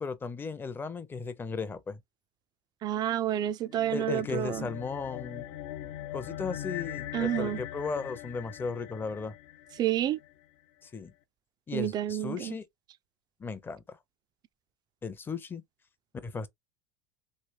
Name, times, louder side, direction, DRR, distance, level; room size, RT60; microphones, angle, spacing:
voice 1, 0.0-2.0 3.9-5.5 6.1-9.3 10.8-11.1 11.7-12.6 13.4-14.0 15.0-15.6 16.2-16.5, left 5 dB, 15° left, 0.6 m, -36 dB
voice 2, 2.8-4.7 7.1-7.6 9.8-10.2 11.7-12.5, right 12 dB, 35° right, 0.4 m, -29 dB
sound 1, 3.6-10.3, left 12 dB, 55° left, 0.6 m, -41 dB
3.2 x 3.0 x 2.8 m
supercardioid pair, 110°, 12 cm